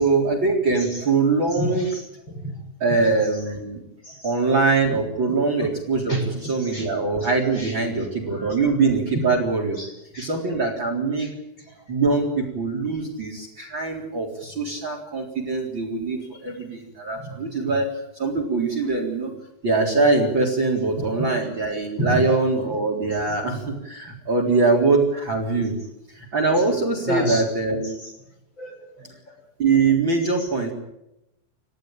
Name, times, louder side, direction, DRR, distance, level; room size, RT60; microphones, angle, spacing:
voice 1, 0.0-1.9 2.8-3.8 4.2-9.8 10.2-11.3 11.9-19.3 19.6-25.8 26.1-28.0 29.6-30.7, right 3 dB, 30° right, 4 dB, 4.3 m, -23 dB
voice 2, 1.5-2.0 2.4-2.5 2.9-3.0 4.0-4.3 4.9-5.0 6.1-6.9 7.6-7.8 8.4-8.5 9.8-10.3 11.2-11.3 11.8-11.9 17.2-17.4 22.0-22.2 27.1-27.4 28.6-29.4, right 1 dB, 30° left, 3 dB, 6.8 m, -30 dB
30.0 x 15.0 x 9.0 m, 0.87 s
omnidirectional pair, 4.3 m